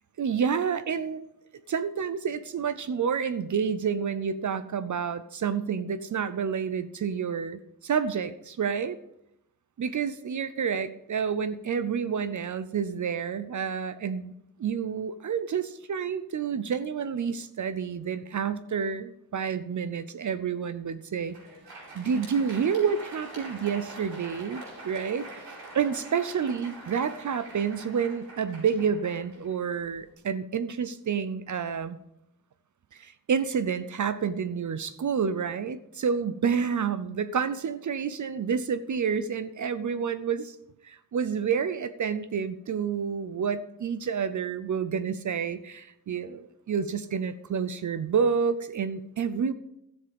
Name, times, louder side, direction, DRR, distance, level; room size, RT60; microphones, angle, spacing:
voice 1, 0.2-1.3 1.7-9.0 9.8-14.3 14.6-21.4 21.9-25.5 25.7-32.0 32.9-40.6 40.8-49.5, right 6 dB, 50° right, 13 dB, 0.6 m, -29 dB
Crowd, 21.1-30.1, right 2 dB, 80° right, 4.9 m, -45 dB
13.0 x 7.2 x 5.2 m, 0.81 s
wide cardioid pair, 160°, 37 cm